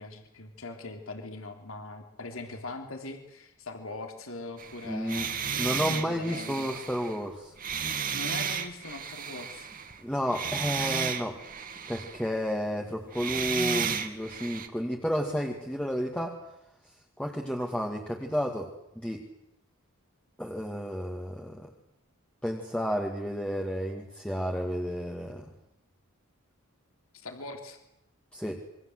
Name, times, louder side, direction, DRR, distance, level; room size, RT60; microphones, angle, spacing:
voice 1, 0.0-6.7 8.1-9.7 27.1-27.8, left 2 dB, 65° left, 5 dB, 3.5 m, -41 dB
sound 1, 4.6-10.0 10.3-12.3 13.1-14.7, right 7 dB, 40° right, 2.2 m, -33 dB
voice 2, 4.8-5.3 5.6-7.5 10.0-11.4 11.9-16.4 17.2-19.3 20.4-21.7 22.4-25.5 28.3-28.6, equal, 5° left, 0 dB, 2.3 m, -31 dB
27.5 x 24.5 x 8.1 m, 0.85 s
head